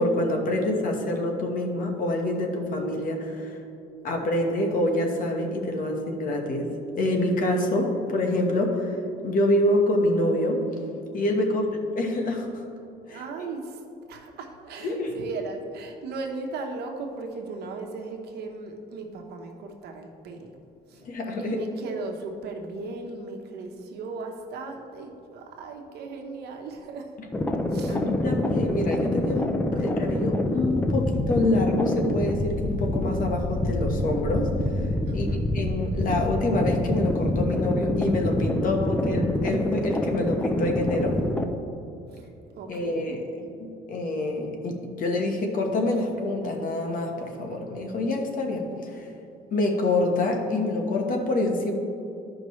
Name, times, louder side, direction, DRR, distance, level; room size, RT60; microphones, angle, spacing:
voice 1, 0.0-3.6 4.0-9.0 9.2-10.6 11.1-11.6 12.0-12.6 13.1-13.2 14.8-15.1 21.0-21.6 27.9-34.5 35.1-35.3 35.5-41.2 42.7-43.2 43.6-49.1 49.5-51.7, left 1 dB, 55° left, 2 dB, 1.3 m, -26 dB
voice 2, 11.4-11.8 13.1-13.8 14.1-20.6 20.9-21.0 21.4-27.1 27.7-28.0 35.1-35.6 42.1-42.3 42.6-43.2, right 3 dB, 70° right, 3 dB, 1.0 m, -37 dB
sound 1, 27.3-41.4, left 1 dB, 10° left, 0.6 m, -26 dB
14.0 x 5.3 x 3.1 m, 2.7 s
cardioid pair, 110°, 17 cm